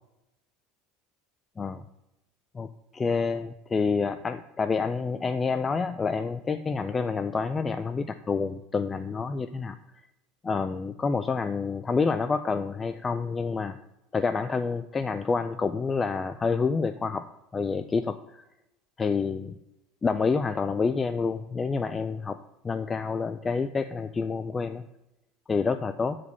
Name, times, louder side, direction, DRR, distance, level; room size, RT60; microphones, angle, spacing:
voice 1, 2.9-9.8 10.4-13.8 14.1-17.2 17.5-18.4 19.0-19.5 20.0-22.4 22.6-24.8 25.5-26.2, left 4 dB, 15° left, 9 dB, 0.3 m, -28 dB
7.9 x 5.0 x 7.0 m, 0.90 s
supercardioid pair, 155°, 0 cm